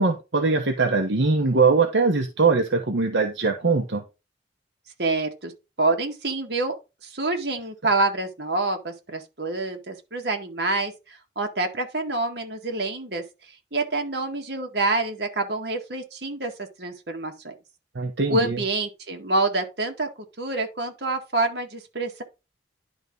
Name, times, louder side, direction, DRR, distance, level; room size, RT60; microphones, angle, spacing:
voice 1, 0.0-4.0 17.9-18.6, right 4 dB, 75° right, 1.1 m, -21 dB
voice 2, 5.0-5.5 5.8-6.8 7.0-13.2 13.7-17.5 18.3-20.1 20.4-22.2, right 2 dB, 60° right, 1.9 m, -27 dB
11.0 x 3.7 x 5.3 m
head